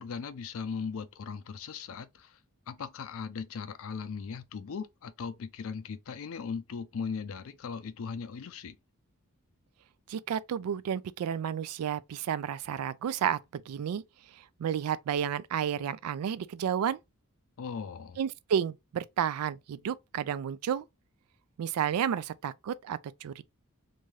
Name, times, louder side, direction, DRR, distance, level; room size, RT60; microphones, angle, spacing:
voice 1, 0.0-2.4 2.7-8.8 17.6-18.2, left 5 dB, 65° left, 0.4 m, -38 dB
voice 2, 10.1-14.0 14.6-17.0 18.2-20.9 21.6-23.4, right 8 dB, 80° right, 0.3 m, -31 dB
2.7 x 2.3 x 3.1 m
head